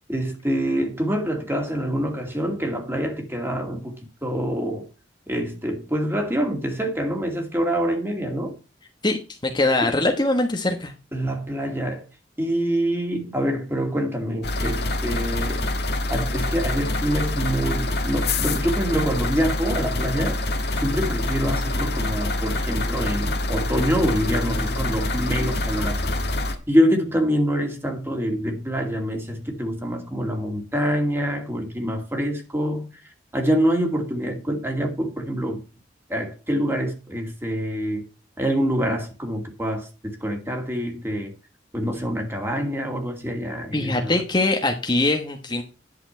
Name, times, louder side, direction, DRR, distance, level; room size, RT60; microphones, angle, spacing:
voice 1, 0.1-4.0 4.2-4.9 5.3-8.5 9.8-9.9 11.1-12.0 12.4-15.7 16.1-20.4 20.8-26.1 26.7-32.9 33.3-35.6 36.1-38.0 38.4-41.3 41.7-44.2, equal, 15° right, 2.4 m, -25 dB
voice 2, 9.0-10.9 43.7-45.6, left 2 dB, 25° left, 1.1 m, -22 dB
sound 1, 14.4-26.5, left 2 dB, 60° left, 1.7 m, -25 dB
11.0 x 7.0 x 4.4 m
head